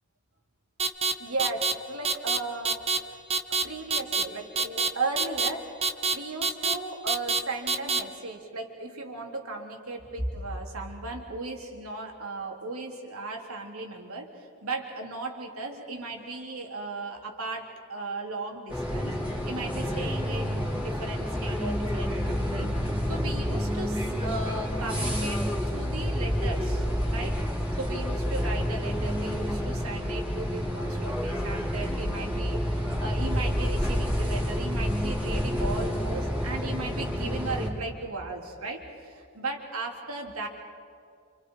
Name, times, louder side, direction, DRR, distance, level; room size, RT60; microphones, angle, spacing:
sound 1, 0.8-1.1 1.4-1.7 2.0-2.4 2.6-3.0 3.3-3.6 3.9-4.2 4.6-4.9 5.2-5.5 5.8-6.1 6.4-6.7 7.1-7.4 7.7-8.0, right 4 dB, 30° right, 1.2 m, -25 dB
voice 1, 1.2-2.8 3.6-19.2 19.5-22.7 23.1-25.4 25.7-27.3 27.8-32.6 33.0-40.5, right 3 dB, 75° right, 1 dB, 3.6 m, -36 dB
sound 2, 18.7-37.7, equal, 5° right, 3.6 m, -29 dB
30.0 x 28.5 x 4.9 m, 2.4 s
head